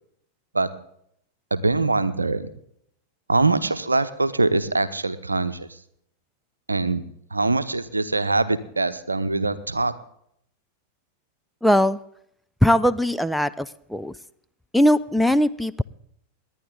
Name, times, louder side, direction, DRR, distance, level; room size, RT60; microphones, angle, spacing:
voice 1, 1.5-2.5 3.3-5.7 6.7-7.0 7.3-9.9, right 3 dB, 80° right, 13 dB, 0.8 m, -23 dB
voice 2, 11.6-12.0 12.6-14.1 14.7-15.8, equal, ahead, 11 dB, 0.4 m, -20 dB
18.5 x 11.0 x 3.9 m, 0.71 s
figure-of-eight pair, 90°, 0 cm